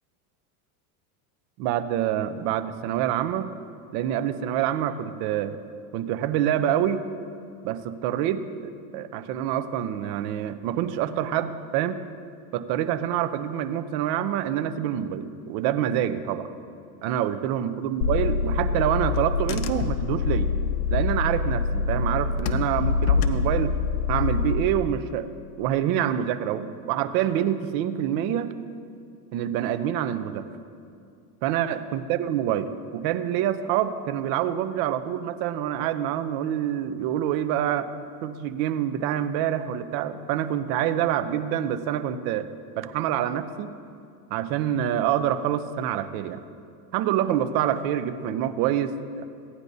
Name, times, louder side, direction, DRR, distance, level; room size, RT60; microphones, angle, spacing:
voice 1, 1.6-3.5 3.9-5.6 5.9-7.0 7.6-12.0 12.5-16.5 17.0-20.5 20.9-23.7 24.1-25.3 25.6-28.5 29.3-30.5 31.4-37.9 38.2-42.5 42.8-43.8 44.3-46.4 46.9-49.3, right 10 dB, 50° right, 11 dB, 0.7 m, -26 dB
Car / Engine, 18.0-24.6, left 5 dB, 55° left, 0.8 m, -25 dB
16.5 x 9.7 x 2.7 m, 2.4 s
supercardioid pair, 125°, 46 cm